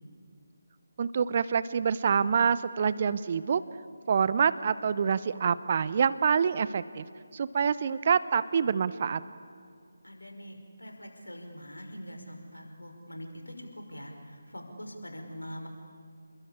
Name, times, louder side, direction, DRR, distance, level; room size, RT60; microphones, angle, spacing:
voice 1, 1.0-3.6 4.1-7.0 7.3-9.2, right 6 dB, 35° right, 16 dB, 0.7 m, -26 dB
voice 2, 10.0-15.7, equal, 75° left, 4 dB, 5.4 m, -43 dB
30.0 x 21.5 x 8.5 m, 2.2 s
figure-of-eight pair, 150°, 0 cm